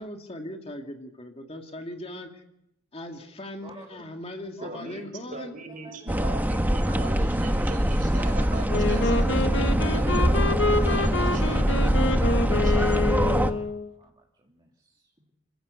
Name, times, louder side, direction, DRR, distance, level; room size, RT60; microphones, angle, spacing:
voice 1, 0.0-2.4 2.9-5.5, left 1 dB, 30° left, 2.4 m, -39 dB
voice 2, 4.6-5.0 5.3-13.2, right 2 dB, 45° right, 6.5 m, -39 dB
voice 3, 5.7-6.2 14.0-15.3, right 2 dB, 25° right, 2.8 m, -50 dB
sound 1, 6.1-13.5, equal, 10° right, 1.2 m, -23 dB
Wind instrument woodwind instrument, 8.7-13.9, left 2 dB, 70° left, 1.7 m, -27 dB
27.5 x 15.5 x 8.3 m
head